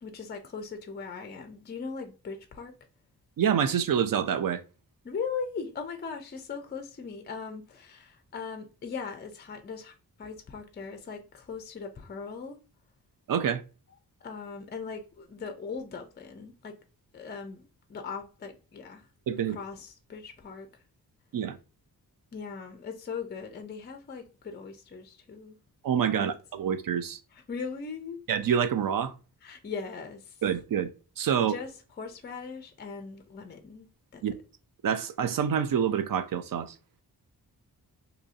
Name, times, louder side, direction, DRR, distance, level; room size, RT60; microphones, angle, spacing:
voice 1, 0.0-2.7 5.0-12.6 14.2-16.7 17.1-19.1 19.5-20.8 22.3-25.6 26.1-26.3 27.3-28.2 29.4-30.4 31.4-33.9 34.1-34.2, left 5 dB, 30° left, 0.4 m, -39 dB
voice 2, 3.4-4.6 13.3-13.6 19.3-19.6 21.3-21.6 25.8-27.2 28.3-29.1 30.4-30.9 31.2-31.5 34.2-34.3 34.8-36.7, right 8 dB, 60° right, 0.5 m, -27 dB
2.8 x 2.6 x 4.0 m
wide cardioid pair, 160°, 38 cm